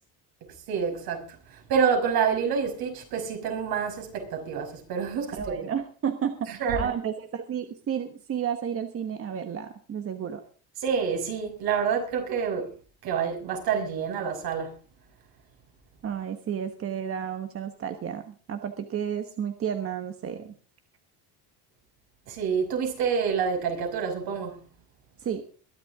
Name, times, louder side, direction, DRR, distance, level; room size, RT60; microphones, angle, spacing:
voice 1, 0.7-5.7 6.5-6.9 10.8-12.7 13.0-14.7 22.3-24.6, right 6 dB, 65° right, 5.8 m, -28 dB
voice 2, 5.3-10.4 16.0-20.5 25.2-25.4, right 8 dB, 35° right, 1.2 m, -32 dB
22.0 x 11.5 x 3.6 m
cardioid pair, 150°, 40 cm